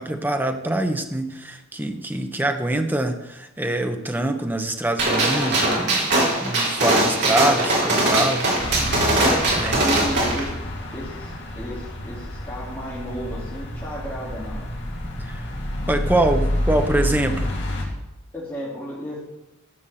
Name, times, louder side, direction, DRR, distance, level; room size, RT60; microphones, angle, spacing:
voice 1, 0.0-6.2 6.4-8.5 9.6-9.8 15.2-15.5 15.9-17.5, right 1 dB, 10° right, 6 dB, 1.0 m, -24 dB
Gunshot gunfire, 5.0-10.4, right 1 dB, 55° right, 3.9 m, -21 dB
sound 1, 8.6-17.8, left 1 dB, 55° left, 2.7 m, -29 dB
voice 2, 9.7-10.5 10.9-14.6 18.3-19.2, equal, 10° left, -9 dB, 3.1 m, -33 dB
14.0 x 6.1 x 7.7 m, 0.94 s
head